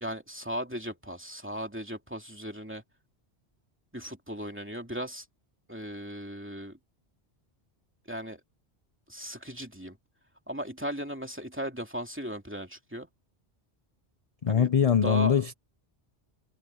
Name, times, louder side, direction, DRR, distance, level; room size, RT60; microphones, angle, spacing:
voice 1, 0.0-2.8 3.9-5.3 5.7-6.8 8.1-8.4 9.1-10.0 10.5-13.1 14.5-14.7 15.0-15.5, equal, 10° right, 2.6 m, -37 dB
voice 2, 14.4-15.5, left 7 dB, 40° left, 0.7 m, -23 dB
omnidirectional pair, 1.1 m